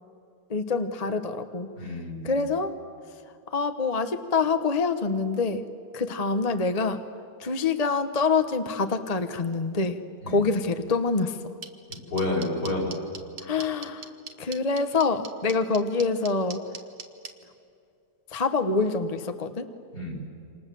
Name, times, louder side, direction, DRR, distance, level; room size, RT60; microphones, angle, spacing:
voice 1, 0.5-1.7 2.2-2.8 3.5-5.6 5.9-7.0 7.4-10.0 10.3-11.4 13.4-14.1 14.4-16.6 18.3-19.7, left 4 dB, 25° left, 8 dB, 0.9 m, -26 dB
voice 2, 1.8-2.3 10.2-10.4 11.9-13.0 19.9-20.2, left 2 dB, 70° left, -1 dB, 6.1 m, -30 dB
sound 1, 11.6-17.3, right 6 dB, 75° right, 2.1 m, -38 dB
28.5 x 26.0 x 7.6 m, 2.4 s
omnidirectional pair, 1.8 m